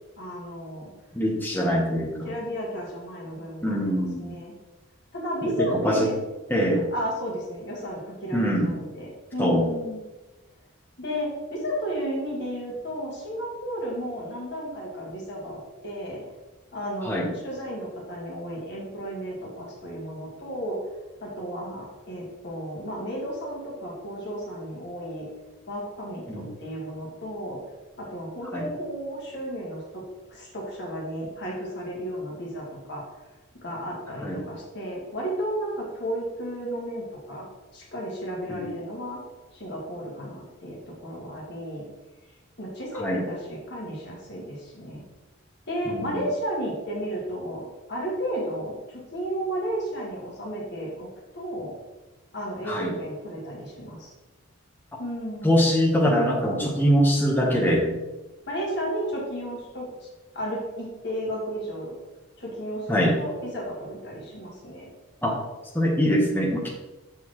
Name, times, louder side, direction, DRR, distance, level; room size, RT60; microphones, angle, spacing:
voice 1, 0.2-0.9 2.2-4.6 5.1-6.2 6.9-10.0 11.0-16.2 16.7-20.9 21.2-25.3 25.7-27.6 28.0-33.0 33.6-37.5 37.7-39.2 39.5-41.9 42.6-45.0 45.7-51.8 52.3-54.1 55.0-55.6 58.5-60.1 60.3-61.9 62.4-64.9, equal, 50° left, -3 dB, 1.8 m, -33 dB
voice 2, 1.1-2.3 3.6-4.3 5.4-6.1 6.5-6.9 8.3-8.7 9.4-9.7 17.0-17.3 26.3-26.5 28.5-28.7 34.2-34.3 38.5-38.7 42.9-43.2 45.9-46.2 52.7-53.0 55.4-58.0 62.9-63.2 65.2-65.4 65.7-66.7, equal, 10° left, -2 dB, 1.0 m, -23 dB
6.3 x 5.5 x 3.1 m, 1.1 s
head